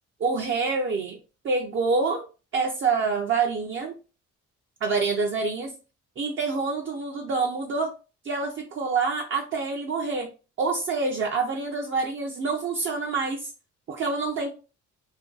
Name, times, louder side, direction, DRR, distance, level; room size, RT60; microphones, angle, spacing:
voice 1, 0.2-1.2 1.4-2.3 2.5-3.9 4.8-5.7 6.2-7.9 8.2-10.3 10.6-13.5 13.9-14.5, right 4 dB, 40° right, 1 dB, 0.5 m, -26 dB
2.6 x 2.2 x 2.3 m, 0.33 s
cardioid pair, 90°, 30 cm